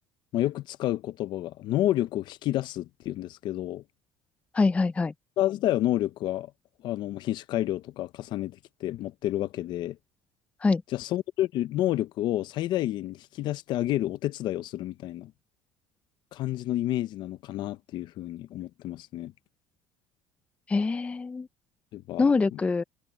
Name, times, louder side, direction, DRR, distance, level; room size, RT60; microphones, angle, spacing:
voice 1, 0.3-3.8 5.4-6.5 6.8-10.0 10.9-15.3 16.3-19.3 21.9-22.2 22.5-22.6, left 14 dB, 55° left, 0.8 m, -29 dB
voice 2, 4.5-5.1 10.6-10.8 20.7-21.5 22.2-22.8, left 4 dB, 15° left, 0.5 m, -24 dB
cardioid pair, 145°, 9 cm